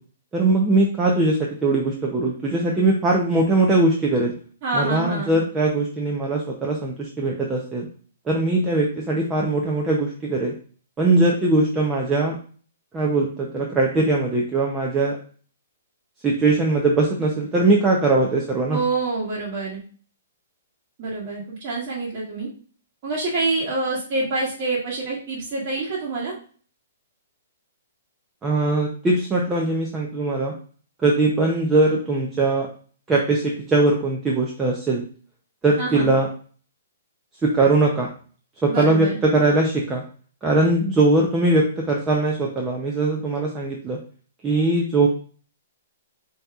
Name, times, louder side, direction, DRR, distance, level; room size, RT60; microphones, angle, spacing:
voice 1, 0.3-4.3 4.7-7.9 8.3-10.5 11.0-12.4 12.9-15.2 16.2-18.8 28.4-30.5 31.0-32.7 33.1-35.0 35.6-36.3 37.4-38.1 38.6-40.0 40.4-44.0 44.4-45.1, right 2 dB, 10° right, -2 dB, 0.5 m, -20 dB
voice 2, 4.6-5.4 18.7-19.8 21.0-22.5 23.0-26.3 35.8-36.1 38.7-39.2, right 3 dB, 30° right, -9 dB, 1.3 m, -26 dB
7.0 x 2.8 x 2.3 m, 0.42 s
hypercardioid pair, 165°, 0 cm